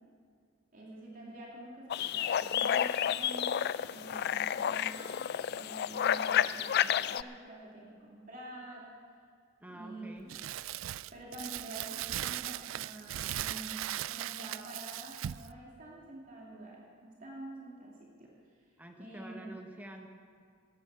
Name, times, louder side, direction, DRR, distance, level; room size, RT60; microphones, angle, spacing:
voice 1, 0.7-5.2 5.5-8.9 9.7-10.1 11.1-18.3 19.0-19.4, right 2 dB, 45° right, -4 dB, 2.6 m, -47 dB
sound 1, 1.9-7.2, left 9 dB, 55° left, 0.3 m, -30 dB
voice 2, 9.6-10.3 18.8-20.1, right 1 dB, 10° right, 3 dB, 1.1 m, -47 dB
Crumpling crinkling, 10.3-15.5, right 13 dB, 85° right, 0.3 m, -38 dB
13.0 x 9.8 x 8.2 m, 2.2 s
head